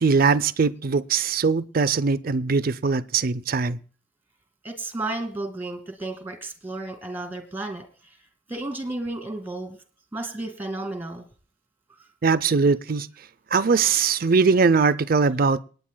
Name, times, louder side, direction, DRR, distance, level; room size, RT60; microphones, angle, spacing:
voice 1, 0.0-3.8 12.2-13.1 13.5-15.6, right 4 dB, 45° right, 0.5 m, -21 dB
voice 2, 4.6-7.8 8.5-9.8 10.1-11.3, right 2 dB, 10° right, 2.1 m, -32 dB
26.5 x 9.6 x 2.2 m
head